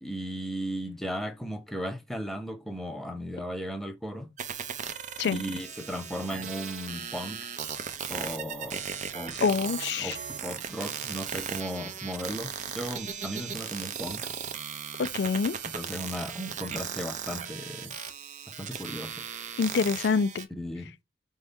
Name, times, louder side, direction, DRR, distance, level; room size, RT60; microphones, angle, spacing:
voice 1, 0.0-4.3 5.3-7.4 8.1-8.8 9.1-9.4 10.0-14.3 15.7-17.9 18.6-19.2 20.5-20.9, equal, ahead, 0.6 m, -36 dB
sound 1, 4.4-20.4, right 7 dB, 40° right, 0.5 m, -37 dB
voice 2, 9.4-10.1 15.0-15.6 19.6-20.5, left 5 dB, 65° left, 0.4 m, -26 dB
4.7 x 2.7 x 3.4 m
head